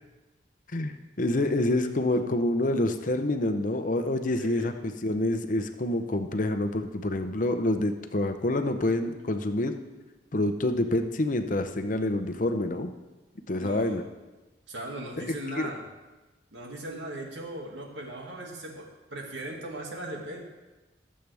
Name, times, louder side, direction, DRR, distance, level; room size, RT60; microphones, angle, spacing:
voice 1, 0.7-9.7 10.3-12.9 13.5-14.0 15.2-15.7, left 1 dB, 45° left, 7 dB, 0.8 m, -27 dB
voice 2, 4.4-4.7 13.6-14.0 14.7-15.8 16.5-20.4, right 1 dB, 80° right, 0 dB, 2.2 m, -38 dB
19.5 x 7.6 x 3.5 m, 1.1 s
head